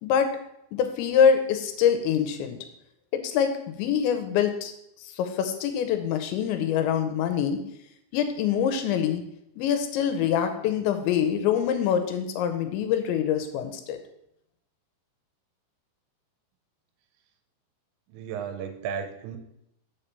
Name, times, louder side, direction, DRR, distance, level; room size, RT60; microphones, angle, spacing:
voice 1, 0.7-2.6 3.1-4.7 5.0-7.6 8.1-9.2 9.6-14.0, left 8 dB, 85° left, 7 dB, 3.0 m, -25 dB
voice 2, 18.1-19.4, right 7 dB, 85° right, 5 dB, 3.1 m, -34 dB
7.3 x 4.4 x 6.7 m, 0.79 s
omnidirectional pair, 5.3 m